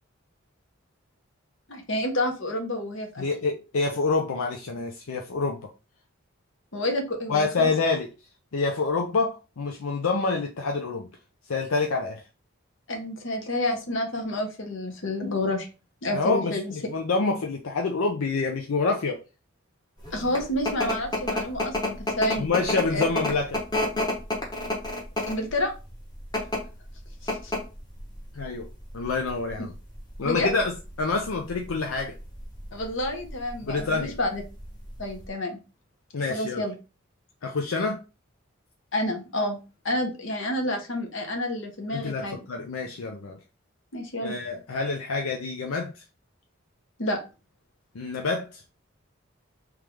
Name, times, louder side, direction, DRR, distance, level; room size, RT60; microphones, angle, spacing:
voice 1, 1.7-3.2 6.7-7.7 12.9-15.7 16.0-16.7 20.1-22.5 22.9-23.0 25.3-25.7 27.2-27.5 30.2-30.5 32.7-34.4 35.0-35.6 36.3-36.7 38.9-39.6 39.8-42.4 43.9-44.4 47.0-47.2, left 1 dB, 65° left, 1.0 m, -29 dB
voice 2, 3.2-5.6 7.3-8.1 8.5-11.1 11.5-12.2 16.1-19.2 22.4-23.6 28.3-28.7 28.9-29.7 30.2-30.7 31.0-32.1 33.6-34.2 36.1-36.6 37.4-38.0 41.9-43.4 44.2-46.0 47.9-48.6, left 4 dB, 85° left, 0.5 m, -27 dB
sound 1, 20.0-35.3, left 1 dB, 20° left, 1.0 m, -31 dB
3.3 x 3.1 x 3.4 m
head